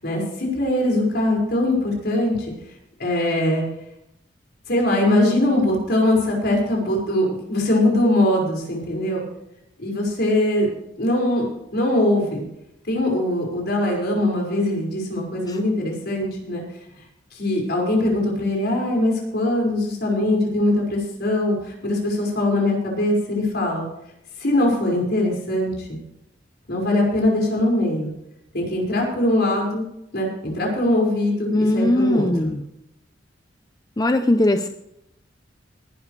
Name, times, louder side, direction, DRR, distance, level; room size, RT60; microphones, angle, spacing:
voice 1, 0.0-2.4 3.0-3.6 4.7-9.2 9.8-10.7 11.0-11.5 11.7-12.5 12.9-16.6 17.3-23.9 24.4-26.0 26.7-28.1 28.5-29.8 30.1-32.5, left 1 dB, 60° left, 0 dB, 5.7 m, -21 dB
voice 2, 31.5-32.6 34.0-34.7, left 1 dB, 20° left, 8 dB, 0.6 m, -19 dB
19.5 x 12.0 x 3.3 m, 0.80 s
head